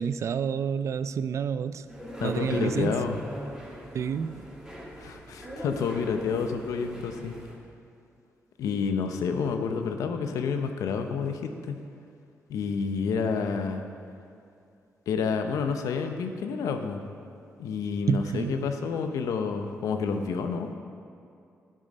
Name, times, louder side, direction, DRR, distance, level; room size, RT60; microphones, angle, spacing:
voice 1, 0.0-1.9 2.2-3.0 3.9-4.4 18.1-18.6, right 7 dB, 60° right, 13 dB, 0.4 m, -29 dB
sound 1, 1.9-7.5, equal, 10° right, 2.8 m, -41 dB
voice 2, 2.2-3.2 5.0-7.3 8.6-11.8 12.5-13.8 15.1-17.0 17.6-20.8, left 5 dB, 90° left, 6 dB, 0.7 m, -29 dB
12.5 x 6.4 x 5.3 m, 2.4 s
cardioid pair, 75°, 6 cm